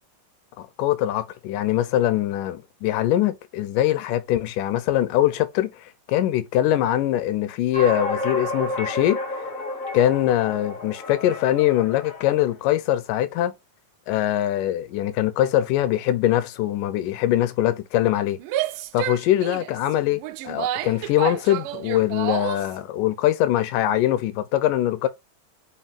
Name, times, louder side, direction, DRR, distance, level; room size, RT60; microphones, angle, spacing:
voice 1, 0.6-9.5 9.9-13.5 14.1-18.4 18.9-25.1, left 13 dB, 75° left, 2.5 m, -22 dB
sound 1, 7.7-12.5, left 1 dB, 55° left, 0.8 m, -31 dB
Female speech woman speaking / Yell, 18.4-22.8, right 13 dB, 80° right, 2.1 m, -30 dB
5.6 x 5.4 x 5.1 m
omnidirectional pair, 4.0 m